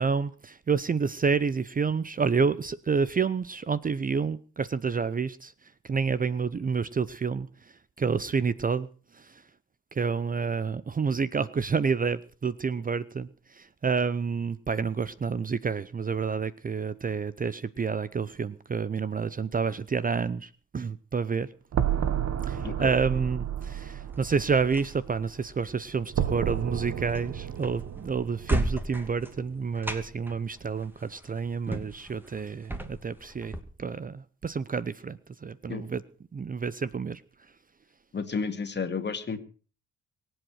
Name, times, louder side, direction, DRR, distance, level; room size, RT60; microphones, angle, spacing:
voice 1, 0.0-5.5 5.8-7.5 8.0-8.9 9.2-9.3 9.9-13.3 13.5-21.5 22.5-33.5 33.8-36.0 36.3-37.2, right 5 dB, 30° right, 17 dB, 0.7 m, -29 dB
sound 1, 21.7-25.8 26.1-29.5, right 10 dB, 60° right, 1.5 m, -32 dB
voice 2, 22.6-23.0 35.7-35.8 38.1-39.4, left 5 dB, 35° left, 8 dB, 2.3 m, -32 dB
sound 2, 23.6-33.6, right 1 dB, 5° right, 2.6 m, -37 dB
23.0 x 8.0 x 6.4 m, 0.40 s
cardioid pair, 90°, 30 cm